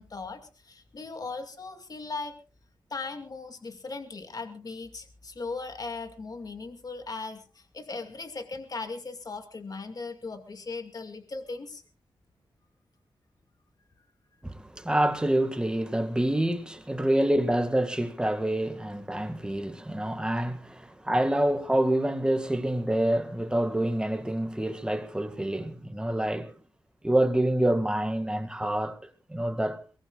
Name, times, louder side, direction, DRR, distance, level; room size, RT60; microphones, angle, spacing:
voice 1, 0.0-2.4 2.9-11.8, left 3 dB, 50° left, 2.3 m, -38 dB
voice 2, 14.4-26.5 27.0-29.0 29.3-29.8, right 1 dB, 10° right, 1.9 m, -27 dB
23.0 x 18.5 x 2.5 m
cardioid pair, 75°, 8 cm